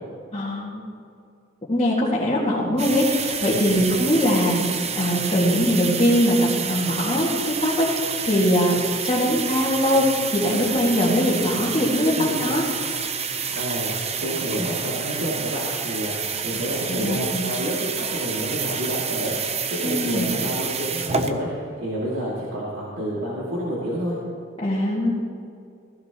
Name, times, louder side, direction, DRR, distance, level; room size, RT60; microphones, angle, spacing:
voice 1, 0.3-0.8 1.7-4.6 5.0-7.3 7.6-8.8 9.0-12.6 16.9-17.4 19.8-20.3 24.6-25.1, equal, 30° left, -8 dB, 2.0 m, -21 dB
sound 1, 2.8-21.3, right 6 dB, 35° right, 0.7 m, -29 dB
voice 2, 12.2-12.5 13.5-24.2, equal, 85° right, -7 dB, 2.4 m, -29 dB
15.5 x 15.5 x 3.0 m, 2.5 s
head